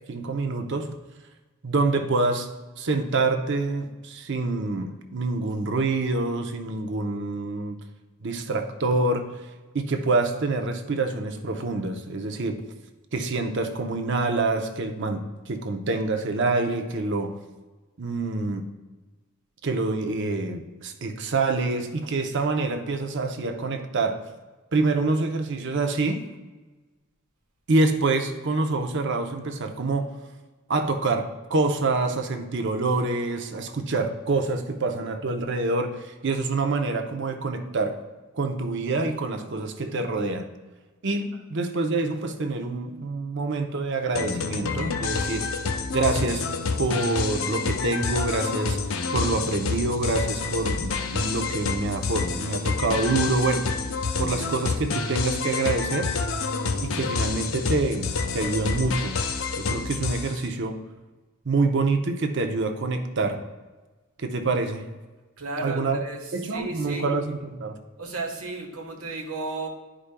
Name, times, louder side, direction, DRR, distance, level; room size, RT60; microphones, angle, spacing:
voice 1, 0.1-1.0 1.6-2.5 2.8-7.8 8.2-9.3 9.7-12.6 13.1-17.3 18.0-18.7 19.6-24.2 24.7-26.3 27.7-30.1 30.7-38.0 38.3-40.5 41.0-45.5 45.9-46.4 46.8-53.7 54.2-56.1 56.8-59.2 59.6-60.8 61.4-63.4 64.2-64.9 65.6-66.0 66.3-67.8, right 3 dB, 55° right, 6 dB, 0.7 m, -26 dB
sound 1, 44.1-60.4, left 4 dB, 65° left, 0.6 m, -28 dB
voice 2, 65.4-67.0 68.0-69.7, right 3 dB, 75° right, 1 dB, 1.3 m, -34 dB
11.0 x 5.0 x 2.2 m, 1.2 s
head